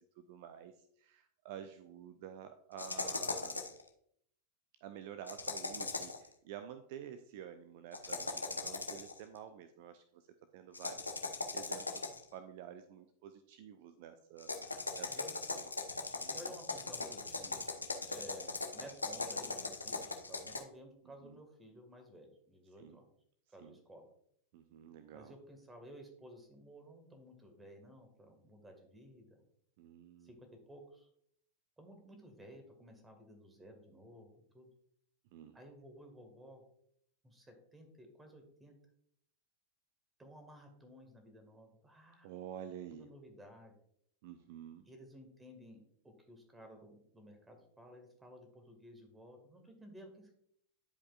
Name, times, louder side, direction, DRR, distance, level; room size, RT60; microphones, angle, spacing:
voice 1, 0.2-0.7 1.0-3.6 4.8-10.2 10.5-15.2 15.5-15.6 16.2-16.3 21.2-21.4 22.8-23.0 23.6-23.7 24.5-25.3 29.8-30.4 35.3-35.6 42.2-43.1 44.2-44.9, right 9 dB, 50° right, 10 dB, 0.5 m, -50 dB
sound 1, 2.8-3.8 5.3-6.3 7.9-9.2 10.7-12.3 14.4-20.6, left 3 dB, 80° left, 0.8 m, -39 dB
voice 2, 16.3-17.6 18.1-23.1 23.5-24.1 25.1-29.4 30.2-31.1 31.8-34.7 35.5-36.6 37.2-38.7 40.2-42.3 42.9-43.7 44.9-45.8 46.3-50.3, equal, 10° right, 4 dB, 1.9 m, -55 dB
11.5 x 5.1 x 2.5 m, 0.68 s
figure-of-eight pair, 90°, 0 cm